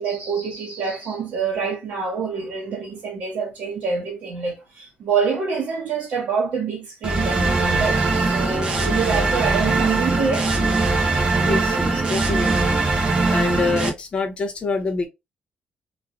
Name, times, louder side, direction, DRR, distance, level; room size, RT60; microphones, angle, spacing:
voice 1, 0.0-10.5 10.8-11.0, right 5 dB, 65° right, 1.0 m, -26 dB
sound 1, 7.0-13.9, right 3 dB, 30° right, 0.6 m, -21 dB
voice 2, 11.4-12.8 13.3-15.1, left 3 dB, 30° left, 0.7 m, -26 dB
3.1 x 2.5 x 2.5 m
cardioid pair, 175°, 3 cm